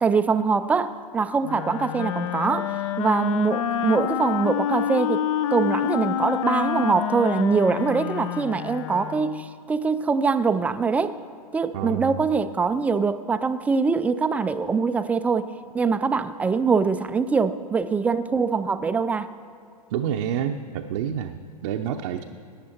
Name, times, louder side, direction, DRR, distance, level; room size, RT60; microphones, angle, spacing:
voice 1, 0.0-5.2 5.5-11.2 11.5-15.5 15.7-19.3, right 5 dB, 5° right, 12 dB, 0.3 m, -23 dB
Wind instrument woodwind instrument, 1.4-9.5, left 10 dB, 50° left, 0.5 m, -28 dB
voice 2, 11.7-12.3 19.9-22.2, right 9 dB, 50° right, 2 dB, 0.7 m, -28 dB
18.0 x 10.0 x 4.4 m, 2.3 s
figure-of-eight pair, 110°, 20 cm